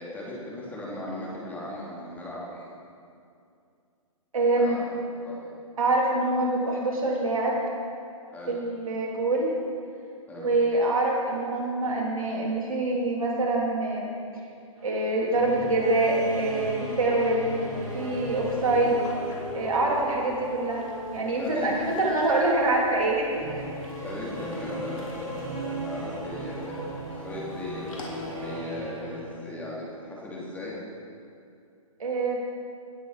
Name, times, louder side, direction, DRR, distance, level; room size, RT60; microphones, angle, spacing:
voice 1, 0.0-2.7 4.5-4.8 5.2-5.5 8.3-8.6 10.3-10.5 21.4-21.7 24.0-26.6 26.9-27.8 28.4-30.8, left 1 dB, 10° left, -6 dB, 3.1 m, -38 dB
voice 2, 4.3-4.8 5.8-7.6 8.5-9.5 10.4-14.1 14.8-17.5 17.9-19.0 19.5-23.7 32.0-32.4, right 2 dB, 75° right, -2 dB, 3.2 m, -25 dB
sound 1, 14.8-29.4, right 1 dB, 90° right, 3.9 m, -38 dB
sound 2, 17.5-28.6, left 1 dB, 70° left, 3.5 m, -41 dB
18.5 x 8.0 x 4.9 m, 2.4 s
hypercardioid pair, 130°, 18 cm